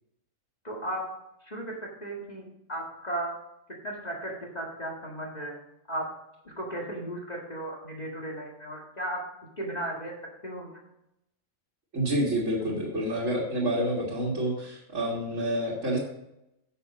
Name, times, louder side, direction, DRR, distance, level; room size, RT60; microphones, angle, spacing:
voice 1, 0.6-1.0 1.4-3.4 3.8-5.6 5.9-6.1 6.5-9.2 9.6-10.1 10.4-10.7, right 1 dB, 35° left, -2 dB, 1.9 m, -35 dB
voice 2, 11.9-16.0, right 1 dB, 80° right, -6 dB, 2.2 m, -28 dB
9.8 x 6.6 x 5.1 m, 0.85 s
omnidirectional pair, 1.3 m